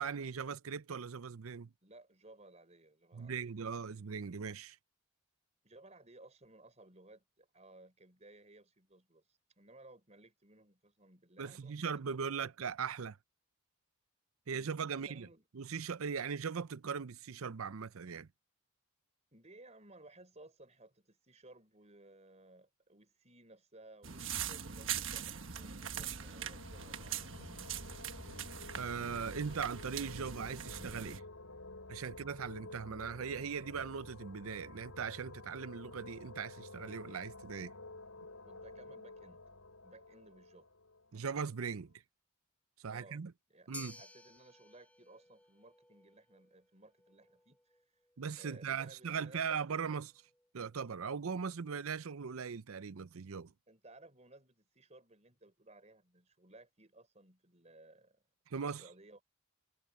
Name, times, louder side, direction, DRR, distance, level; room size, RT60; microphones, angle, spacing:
voice 1, 0.0-1.7 3.1-4.8 11.4-13.2 14.5-15.3 15.5-18.3 28.8-31.2 31.9-37.7 41.1-41.9 42.8-43.3 43.7-44.0 48.2-50.1 50.5-53.5 58.5-58.8, right 6 dB, 80° right, 0.6 m, -39 dB
voice 2, 1.8-3.7 5.6-12.4 14.5-15.5 19.3-27.6 38.4-39.4 39.8-40.7 42.8-43.2 43.5-47.8 48.4-49.4 49.7-50.0 53.7-58.2 58.6-59.3, right 2 dB, 30° right, 5.2 m, -59 dB
sound 1, 24.0-31.2, right 8 dB, 60° right, 1.4 m, -42 dB
sound 2, 26.1-41.7, left 2 dB, 85° left, 5.8 m, -51 dB
sound 3, 43.7-52.1, left 2 dB, 5° left, 5.4 m, -57 dB
head